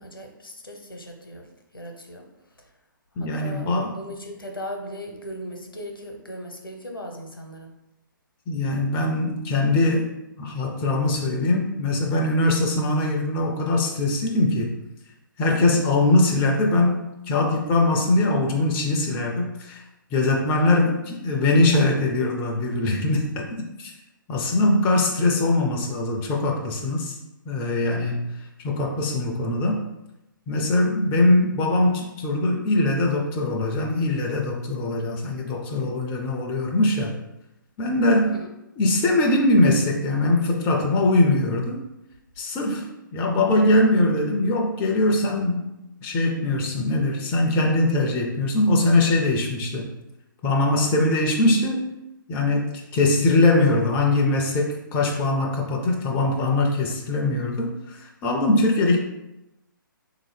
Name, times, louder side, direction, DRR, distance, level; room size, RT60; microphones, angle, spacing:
voice 1, 0.0-1.4 1.7-2.3 2.6-2.7 3.2-7.7 38.2-38.5, equal, 85° left, 2 dB, 0.8 m, -38 dB
voice 2, 3.2-4.0 8.5-10.1 10.4-14.8 15.4-19.8 20.1-23.4 23.8-23.9 24.3-27.2 27.5-28.3 28.6-29.8 30.5-37.1 37.8-38.4 38.8-41.8 42.4-45.7 46.0-49.9 50.4-51.8 52.3-59.0, left 2 dB, 15° left, 1 dB, 0.3 m, -22 dB
3.6 x 2.7 x 3.2 m, 0.93 s
figure-of-eight pair, 130°, 11 cm